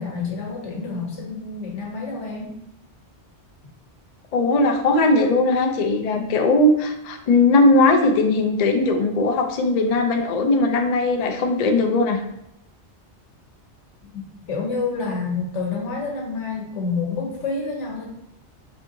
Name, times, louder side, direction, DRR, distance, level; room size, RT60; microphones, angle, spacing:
voice 1, 0.0-2.6 14.1-18.0, left 4 dB, 85° left, -1 dB, 1.2 m, -28 dB
voice 2, 4.3-12.2, left 2 dB, 60° left, 3 dB, 0.4 m, -19 dB
4.4 x 2.6 x 2.6 m, 0.79 s
omnidirectional pair, 1.2 m